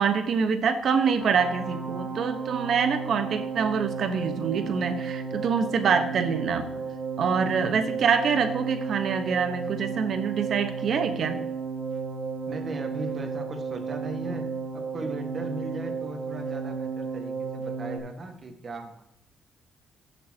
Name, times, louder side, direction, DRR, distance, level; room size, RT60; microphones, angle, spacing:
voice 1, 0.0-6.6 7.2-11.4, right 6 dB, 60° right, 7 dB, 1.3 m, -25 dB
sound 1, 1.2-18.0, right 5 dB, 5° left, 3.4 m, -33 dB
voice 2, 12.5-14.5 14.7-19.0, right 2 dB, 40° right, 4 dB, 1.8 m, -38 dB
15.0 x 6.7 x 3.0 m, 0.80 s
cardioid pair, 90°, 0 cm